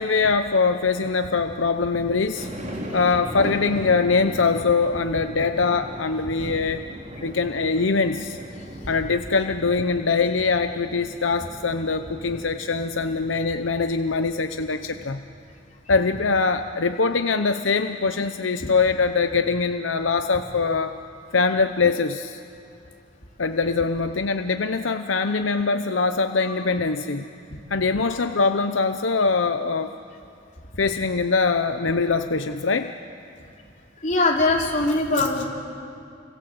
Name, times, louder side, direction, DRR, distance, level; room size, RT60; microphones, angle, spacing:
voice 1, 0.0-2.5 2.9-6.8 7.2-8.4 8.9-15.2 15.9-20.9 21.3-22.4 23.4-27.3 27.7-29.9 30.8-32.9, left 4 dB, 85° left, 7 dB, 0.9 m, -23 dB
sound 1, 2.3-15.1, equal, 40° right, 3.8 m, -38 dB
voice 2, 34.0-35.4, left 2 dB, 40° left, -1 dB, 4.1 m, -21 dB
29.5 x 25.5 x 7.9 m, 2.5 s
head